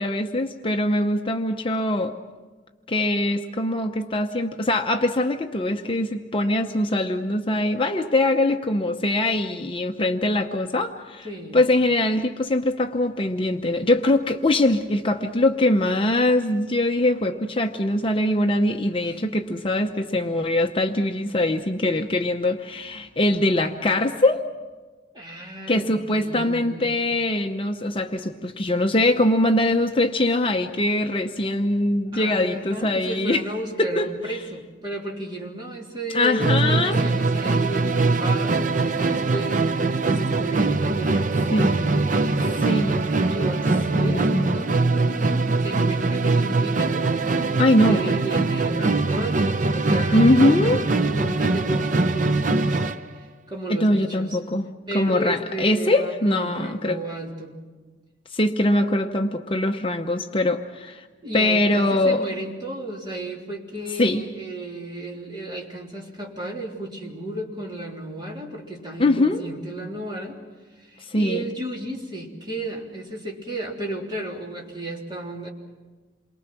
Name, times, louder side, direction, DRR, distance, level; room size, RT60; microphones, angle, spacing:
voice 1, 0.0-2.1 2.9-11.3 11.5-24.4 25.7-33.4 33.8-34.1 36.1-37.0 41.5-41.7 42.6-43.1 43.9-44.6 47.6-48.1 50.1-50.8 53.7-57.0 58.3-61.0 61.3-62.2 64.0-64.2 69.0-69.4 71.0-71.5, left 1 dB, 30° left, 4 dB, 0.8 m, -22 dB
voice 2, 11.2-11.6 19.0-19.4 23.3-23.9 25.1-26.9 32.1-42.8 43.3-52.8 53.5-54.4 54.9-57.5 61.2-70.4 70.8-75.5, right 1 dB, 25° right, -2 dB, 3.4 m, -34 dB
Musical instrument, 36.4-53.1, right 3 dB, 45° right, 0.7 m, -22 dB
28.5 x 23.0 x 6.1 m, 1.3 s
head